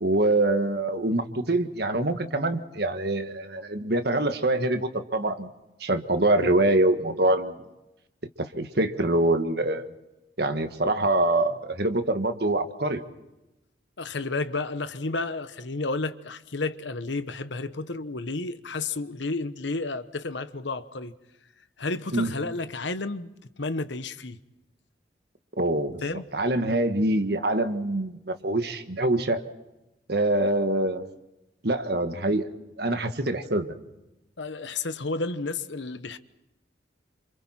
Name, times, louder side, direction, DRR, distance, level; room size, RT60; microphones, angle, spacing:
voice 1, 0.0-5.5 5.8-7.7 8.4-9.9 10.4-13.0 22.1-22.3 25.6-26.0 26.3-29.4 30.1-31.1 31.6-32.5 32.8-33.7, right 1 dB, 55° right, 1.6 m, -25 dB
voice 2, 14.0-21.1 21.8-23.3 23.6-24.4 26.0-26.2 34.4-36.2, left 3 dB, 70° left, 1.1 m, -31 dB
29.0 x 27.0 x 4.4 m
head